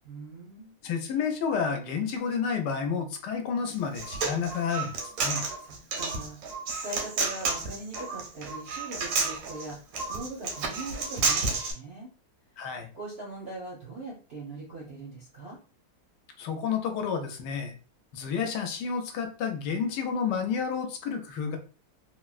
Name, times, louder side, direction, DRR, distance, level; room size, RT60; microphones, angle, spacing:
voice 1, 0.0-0.8 5.6-6.4 6.8-12.1 12.9-15.6, right 2 dB, 60° right, -3 dB, 0.6 m, -41 dB
voice 2, 0.8-4.9 5.2-5.4 12.6-12.9 16.4-17.8 18.1-21.6, left 6 dB, 75° left, 5 dB, 1.1 m, -30 dB
Human voice, 3.7-11.7, right 4 dB, 90° right, 1.4 m, -31 dB
3.5 x 2.1 x 2.3 m, 0.38 s
omnidirectional pair, 1.9 m